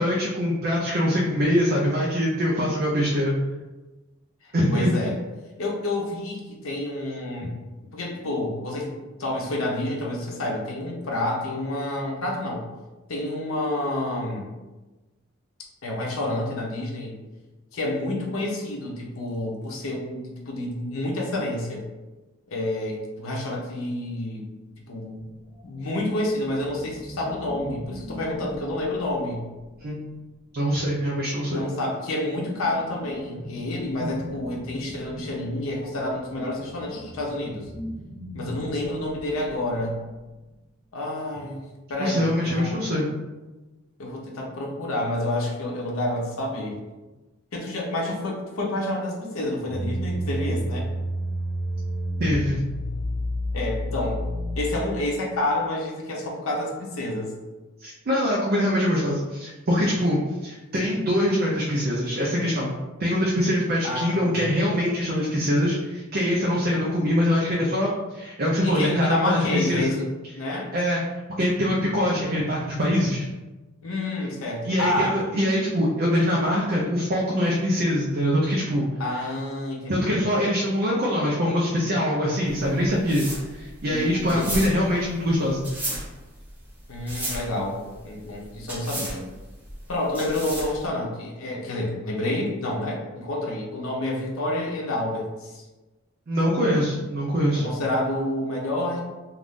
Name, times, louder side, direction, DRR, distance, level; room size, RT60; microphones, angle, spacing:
voice 1, 0.0-3.3 4.5-5.0 29.8-30.1 30.5-31.7 42.0-43.1 52.2-52.6 57.8-62.7 63.0-69.9 70.7-71.0 71.4-73.3 74.6-78.9 79.9-85.7 96.3-97.6, equal, 45° right, -4 dB, 0.5 m, -23 dB
voice 2, 4.4-5.2 5.6-7.6 7.9-12.7 13.1-14.5 15.8-17.1 17.7-21.9 22.5-24.5 24.9-25.2 25.6-29.5 31.5-37.7 38.3-40.0 40.9-42.9 44.0-46.8 47.5-50.9 53.5-54.3 54.6-57.3 63.8-64.3 68.6-70.1 70.4-70.7 73.8-75.2 79.0-80.3 83.9-84.7 86.9-89.3 89.9-95.6 97.5-99.0, left 1 dB, 85° left, -1 dB, 0.7 m, -29 dB
sound 1, 25.1-30.4 31.2-40.6, equal, 10° left, 1.1 m, -42 dB
sound 2, 49.6-55.1, equal, 60° left, 1.4 m, -29 dB
sound 3, 82.5-90.9, right 1 dB, 10° right, 0.7 m, -34 dB
2.5 x 2.4 x 3.5 m, 1.2 s
head